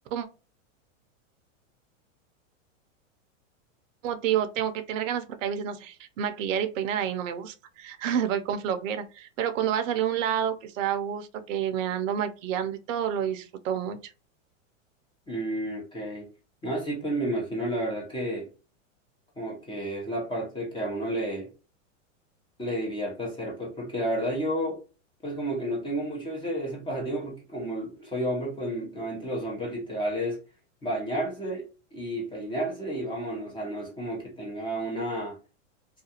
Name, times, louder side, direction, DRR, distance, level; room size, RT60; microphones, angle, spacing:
voice 1, 4.0-14.0, right 9 dB, 75° right, 0.6 m, -29 dB
voice 2, 15.3-16.3 16.6-18.5 19.4-21.5 22.6-24.8 25.2-30.4 30.8-35.4, right 1 dB, 15° left, 0.7 m, -31 dB
2.4 x 2.3 x 2.8 m
supercardioid pair, 135°, 39 cm